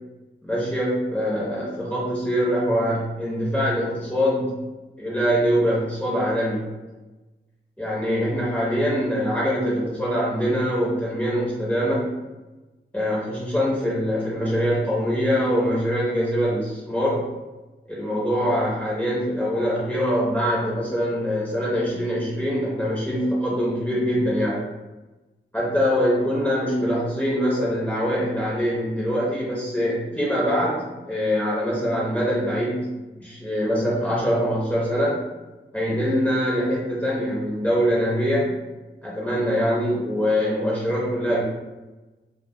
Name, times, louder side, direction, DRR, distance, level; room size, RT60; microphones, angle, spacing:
voice 1, 0.4-4.6 5.0-6.7 7.8-12.2 12.9-17.3 17.9-24.6 25.5-32.9 33.2-35.2 35.7-38.5 39.0-41.4, equal, 10° left, -7 dB, 0.7 m, -23 dB
2.2 x 2.1 x 3.5 m, 1.1 s
wide cardioid pair, 100°, 20 cm